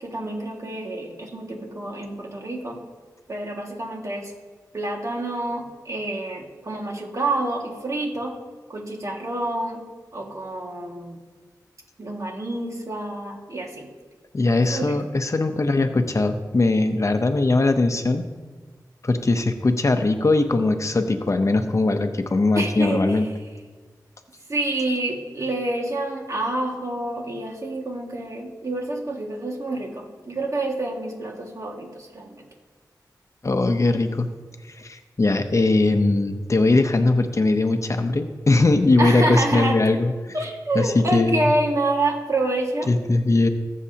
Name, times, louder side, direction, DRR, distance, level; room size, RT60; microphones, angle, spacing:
voice 1, 0.0-2.8 3.3-4.3 4.7-8.3 8.7-9.8 10.1-11.2 12.0-13.9 14.7-15.0 22.6-23.2 24.5-32.4 39.0-39.8 40.3-42.9, right 2 dB, 50° right, 0 dB, 1.9 m, -27 dB
voice 2, 14.3-18.2 19.0-23.3 33.4-34.3 34.7-40.1 40.7-41.5 42.9-43.5, left 2 dB, 45° left, 7 dB, 0.8 m, -20 dB
19.5 x 7.4 x 2.9 m, 1.4 s
wide cardioid pair, 65°, 7 cm